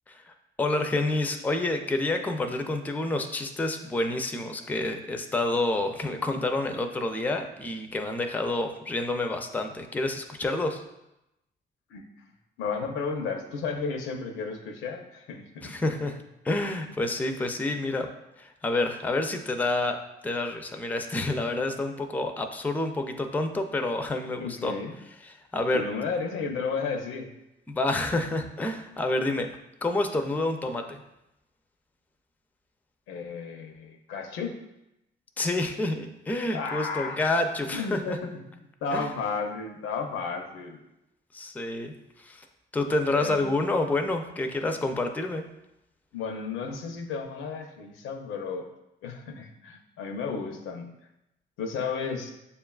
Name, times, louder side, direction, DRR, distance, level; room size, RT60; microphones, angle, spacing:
voice 1, 0.6-10.8 15.6-16.2 16.4-18.1 18.4-20.0 20.2-24.7 25.2-25.8 27.7-29.5 29.8-31.0 35.4-38.2 38.9-39.1 41.3-41.9 42.2-42.4 42.7-45.4, left 2 dB, 10° left, 5 dB, 0.3 m, -28 dB
voice 2, 12.6-15.7 24.4-24.9 25.7-27.3 33.1-34.5 36.5-37.2 37.8-38.3 38.8-40.8 43.1-43.5 46.1-48.6 49.0-50.9 51.6-52.3, left 5 dB, 85° left, 4 dB, 0.6 m, -33 dB
6.7 x 2.3 x 2.3 m, 0.89 s
cardioid pair, 90°, 20 cm